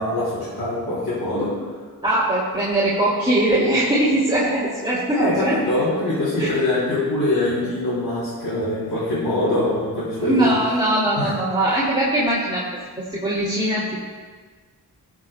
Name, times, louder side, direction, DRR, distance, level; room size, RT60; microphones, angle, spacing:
voice 1, 0.0-1.7 5.2-10.5 11.2-11.3, left 1 dB, 85° left, -10 dB, 3.1 m, -23 dB
voice 2, 2.0-5.6 6.4-6.6 10.2-12.6 13.1-14.1, right 1 dB, 15° right, -7 dB, 2.2 m, -21 dB
20.0 x 7.2 x 2.2 m, 1.5 s
cardioid pair, 40°, 38 cm